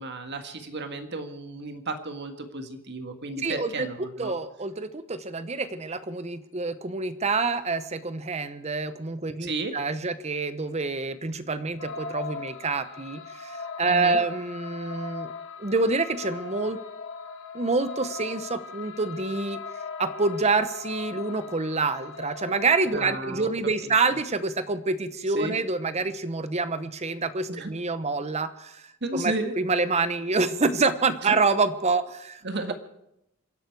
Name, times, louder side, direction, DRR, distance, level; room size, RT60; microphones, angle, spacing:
voice 1, 0.0-4.3 9.4-9.7 13.9-14.2 22.9-23.5 23.8-23.9 25.4-25.6 27.5-27.7 29.0-29.5 32.4-32.7, right 2 dB, 50° right, 7 dB, 1.7 m, -33 dB
voice 2, 3.4-3.9 4.2-15.3 15.6-16.8 17.5-19.6 20.0-28.8 29.1-32.4, right 3 dB, 30° right, 12 dB, 0.9 m, -27 dB
sound 1, 11.8-23.1, left 4 dB, 60° left, 1.8 m, -39 dB
27.0 x 11.5 x 4.7 m, 0.82 s
head